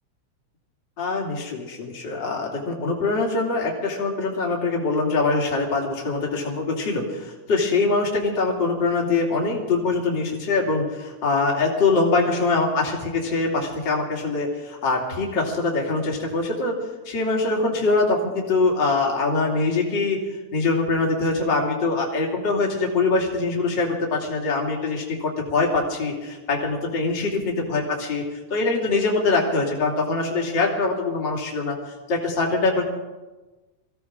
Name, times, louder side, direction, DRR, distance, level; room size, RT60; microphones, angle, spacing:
voice 1, 1.0-16.8 17.0-31.8 32.1-32.8, left 3 dB, 40° left, -1 dB, 3.0 m, -23 dB
24.0 x 16.0 x 3.7 m, 1.2 s
omnidirectional pair, 3.4 m